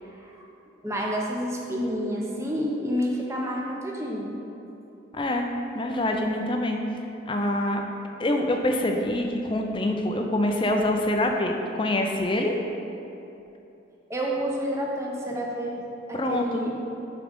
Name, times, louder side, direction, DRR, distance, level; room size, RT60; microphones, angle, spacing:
voice 1, 0.8-4.3 14.1-16.8, equal, 15° right, -2 dB, 0.7 m, -29 dB
voice 2, 5.1-5.5 5.7-6.8 7.3-7.8 8.2-12.6 16.1-16.7, left 1 dB, 25° left, 3 dB, 0.5 m, -25 dB
6.7 x 3.8 x 5.2 m, 2.9 s
head